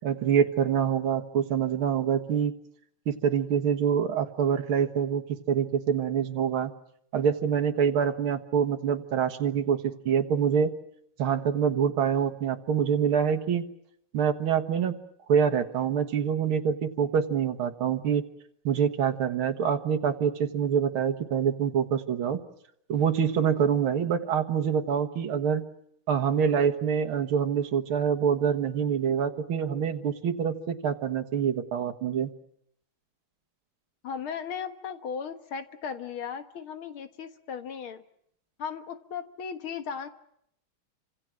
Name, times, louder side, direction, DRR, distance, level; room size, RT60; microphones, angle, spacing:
voice 1, 0.0-2.5 3.1-6.7 7.1-10.7 11.2-13.7 14.1-15.0 15.3-18.2 18.6-22.4 22.9-25.6 26.1-32.3, right 7 dB, 75° right, 5 dB, 2.3 m, -26 dB
voice 2, 34.0-38.0 38.6-40.1, left 7 dB, 75° left, 8 dB, 2.3 m, -36 dB
28.5 x 26.0 x 6.2 m, 0.71 s
omnidirectional pair, 2.4 m